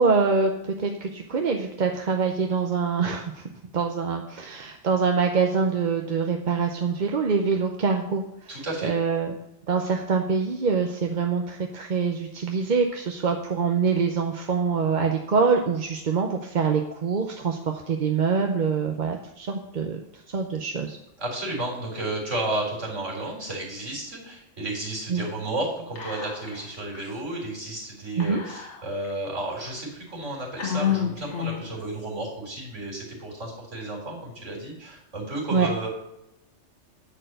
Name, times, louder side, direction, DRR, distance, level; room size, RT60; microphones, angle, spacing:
voice 1, 0.0-3.4 3.7-8.2 8.8-9.3 9.7-17.6 17.9-20.0 20.3-21.0 25.1-25.2 28.2-28.4 35.5-35.7, right 5 dB, 45° right, 2 dB, 0.8 m, -24 dB
voice 2, 8.5-8.9 21.2-35.9, right 1 dB, 85° right, -1 dB, 4.0 m, -32 dB
Whispering, 26.0-26.7 27.0-27.1 28.2-29.1 29.7-29.8 30.6-31.8, left 9 dB, 70° left, 2.0 m, -29 dB
9.9 x 4.6 x 7.9 m, 0.84 s
omnidirectional pair, 1.2 m